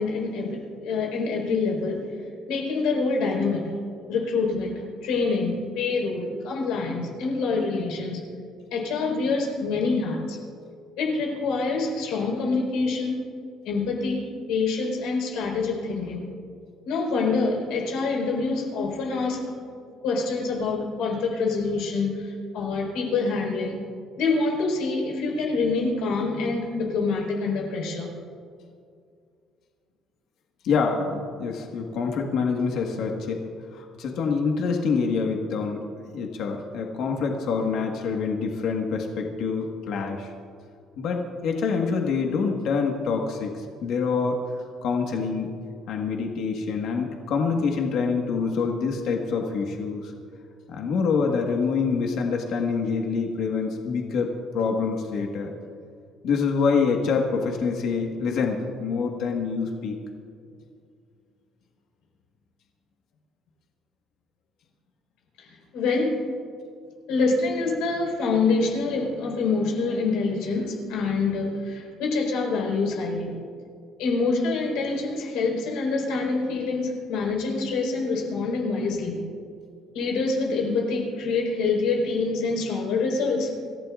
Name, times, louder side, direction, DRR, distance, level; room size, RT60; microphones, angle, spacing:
voice 1, 0.0-2.0 2.5-3.6 4.1-8.2 8.7-10.4 11.0-13.2 13.6-16.3 16.8-19.5 20.0-23.8 24.2-28.1 65.4-66.1 67.1-73.3 74.0-79.2 79.9-83.5, left 3 dB, 80° left, 0 dB, 4.4 m, -26 dB
voice 2, 30.6-33.4 33.7-35.8 36.1-40.3 41.0-44.4 44.8-45.5 45.9-50.1 50.7-55.5 56.2-60.0, left 5 dB, 60° left, 1 dB, 1.5 m, -26 dB
27.0 x 15.0 x 2.5 m, 2.3 s
cardioid pair, 160°, 0 cm